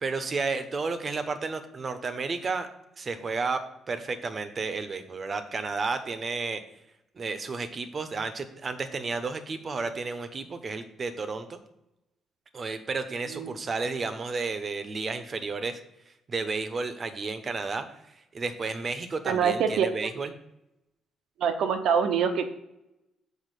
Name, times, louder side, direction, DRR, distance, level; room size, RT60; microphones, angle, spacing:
voice 1, 0.0-2.7 3.0-3.6 3.9-6.6 7.2-11.6 12.5-15.8 16.3-17.8 18.3-20.3, right 4 dB, 40° right, 9 dB, 1.0 m, -32 dB
voice 2, 19.2-19.9 21.4-22.5, right 7 dB, 80° right, 8 dB, 1.0 m, -25 dB
6.4 x 4.9 x 6.7 m, 0.88 s
cardioid pair, 90°, 0 cm